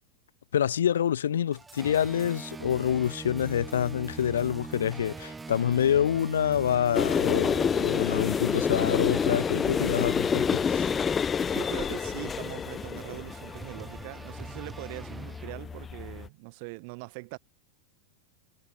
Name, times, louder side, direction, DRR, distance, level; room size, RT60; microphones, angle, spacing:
voice 1, 0.5-10.9, left 9 dB, 65° left, 0.6 m, -27 dB
sound 1, 1.5-15.9, right 4 dB, 10° right, 1.2 m, -42 dB
sound 2, 6.9-16.3, left 7 dB, 20° left, 0.7 m, -29 dB
voice 2, 11.4-17.4, right 33 dB, 45° right, 4.9 m, -41 dB
figure-of-eight pair, 90°, 0 cm